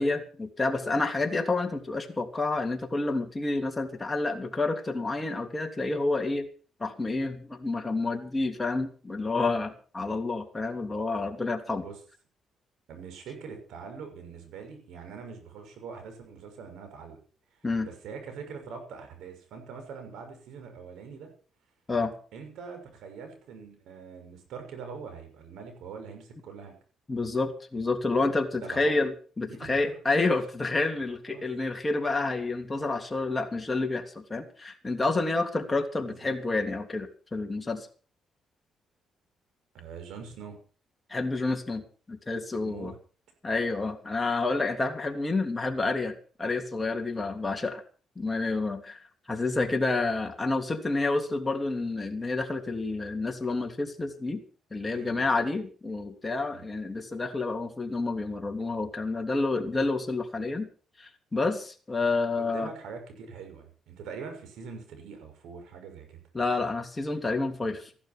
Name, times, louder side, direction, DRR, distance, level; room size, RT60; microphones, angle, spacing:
voice 1, 0.0-6.5 6.8-11.8 17.6-17.9 21.9-22.1 27.1-37.9 41.1-41.8 42.1-42.9 43.4-47.8 48.2-49.0 49.3-54.4 54.7-60.7 61.0-62.7 66.3-67.9, left 3 dB, 20° left, 3 dB, 3.1 m, -29 dB
voice 2, 11.7-12.0 12.9-17.2 17.8-21.3 22.3-26.7 28.5-29.0 29.5-29.9 31.3-31.5 36.0-36.3 39.7-40.6 42.6-43.0 54.9-55.3 56.5-56.7 62.4-66.2, right 5 dB, 85° right, 6 dB, 6.1 m, -43 dB
15.0 x 12.0 x 6.1 m, 0.40 s
cardioid pair, 90°, 0 cm